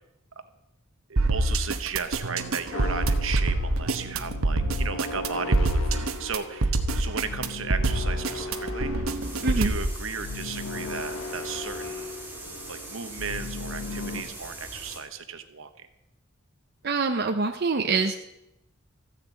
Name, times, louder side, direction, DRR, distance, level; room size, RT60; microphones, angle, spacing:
voice 1, 1.1-12.1 12.7-15.9, right 6 dB, 70° right, 9 dB, 1.2 m, -35 dB
sound 1, 1.2-9.9, right 2 dB, 90° right, 1.0 m, -25 dB
sound 2, 2.7-14.2, left 3 dB, 80° left, 1.5 m, -37 dB
sound 3, 9.2-15.0, right 2 dB, 10° right, 3.0 m, -42 dB
voice 2, 9.4-9.7 16.8-18.1, right 4 dB, 50° right, 4 dB, 0.8 m, -25 dB
14.5 x 6.8 x 8.2 m, 0.86 s
head